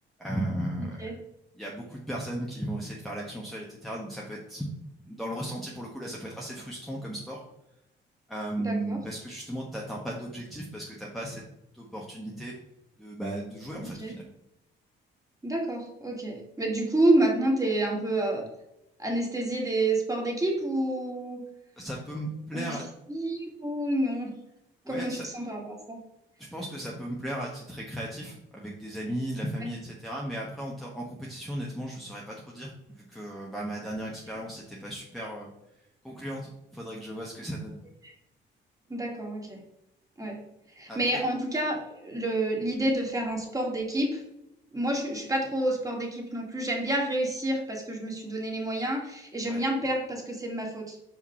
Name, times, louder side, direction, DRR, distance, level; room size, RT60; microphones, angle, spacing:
voice 1, 0.2-1.1 1.5-4.7 5.0-7.4 8.3-11.4 11.7-12.6 13.0-14.3 21.8-22.9 24.8-25.3 26.4-35.5 36.0-37.8 40.9-41.0 49.5-49.6, right 1 dB, ahead, -4 dB, 1.3 m, -36 dB
voice 2, 8.6-9.0 13.8-14.2 15.4-18.5 19.0-21.4 22.5-22.8 23.1-24.3 24.9-26.0 38.0-38.1 38.9-39.6 40.2-40.4 40.8-44.2 44.7-51.0, right 1 dB, 15° right, 0 dB, 2.2 m, -29 dB
5.2 x 5.2 x 5.6 m, 0.84 s
cardioid pair, 90°, 20 cm